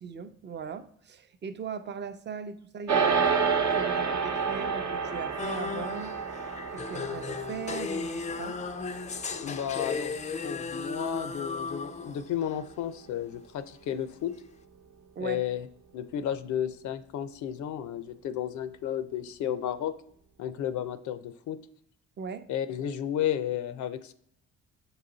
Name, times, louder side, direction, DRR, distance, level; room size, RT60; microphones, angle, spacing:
voice 1, 0.0-6.1 6.7-8.6 15.2-15.5 22.2-22.5, right 6 dB, 35° right, 10 dB, 0.6 m, -39 dB
sound 1, 2.9-12.4, right 5 dB, 65° right, 0.9 m, -31 dB
sound 2, 5.4-12.6, left 5 dB, 25° left, 0.3 m, -36 dB
voice 2, 9.4-10.2 10.4-14.3 15.2-15.7 15.9-19.9 20.4-21.6 22.5-24.1, left 10 dB, 75° left, 13 dB, 0.5 m, -32 dB
6.9 x 4.0 x 3.8 m, 0.67 s
cardioid pair, 90°, 30 cm